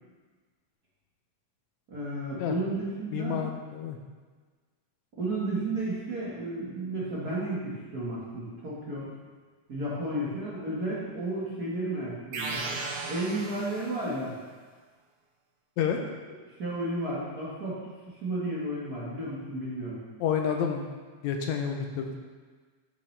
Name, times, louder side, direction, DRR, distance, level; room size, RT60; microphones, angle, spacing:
voice 1, 1.9-3.4 5.2-9.1 9.7-12.6 13.1-14.4 16.6-17.8 18.1-20.0, right 1 dB, 40° right, -8 dB, 1.5 m, -32 dB
voice 2, 3.1-4.0 15.8-16.0 20.2-20.9 21.2-22.2, left 7 dB, 80° left, 3 dB, 1.9 m, -29 dB
sound 1, 12.3-14.2, right 3 dB, 70° right, 1.7 m, -36 dB
11.5 x 5.6 x 3.3 m, 1.4 s
omnidirectional pair, 3.4 m